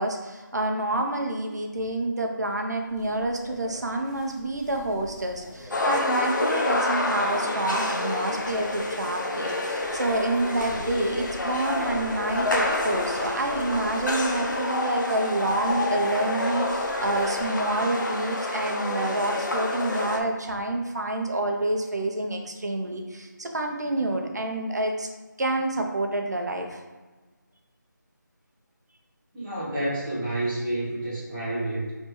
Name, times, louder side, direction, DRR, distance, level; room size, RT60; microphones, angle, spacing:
voice 1, 0.0-25.1 25.4-26.8, right 2 dB, 60° right, 3 dB, 0.7 m, -28 dB
sound 1, 2.9-17.4, left 1 dB, 20° left, 1.0 m, -46 dB
sound 2, 5.7-20.2, left 2 dB, 70° left, 0.8 m, -28 dB
voice 2, 29.3-31.9, right 1 dB, 5° right, -14 dB, 0.5 m, -29 dB
3.3 x 2.9 x 4.6 m, 1.3 s
figure-of-eight pair, 170°, 10 cm